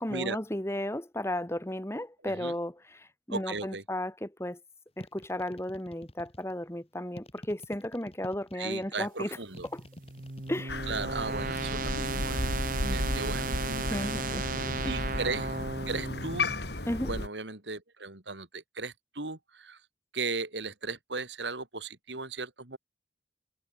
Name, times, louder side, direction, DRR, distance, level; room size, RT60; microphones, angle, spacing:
voice 1, 0.0-4.6 5.0-9.4 9.7-9.8 10.5-10.9 12.8-13.2 13.9-14.5 14.8-14.9 16.9-17.1, left 1 dB, 15° left, 1.6 m, -34 dB
voice 2, 2.2-2.5 3.3-3.8 8.5-9.7 10.9-12.4 12.9-13.5 13.9-14.0 14.6-15.6 15.9-16.5 17.1-19.8 20.1-22.8, right 3 dB, 80° right, 3.6 m, -36 dB
sound 1, 5.0-6.5 7.1-8.9 9.5-10.6, equal, 35° left, 4.3 m, -48 dB
sound 2, 9.6-16.7, right 4 dB, 50° right, 1.3 m, -35 dB
Crow, 10.7-17.3, left 2 dB, 65° left, 3.5 m, -34 dB
head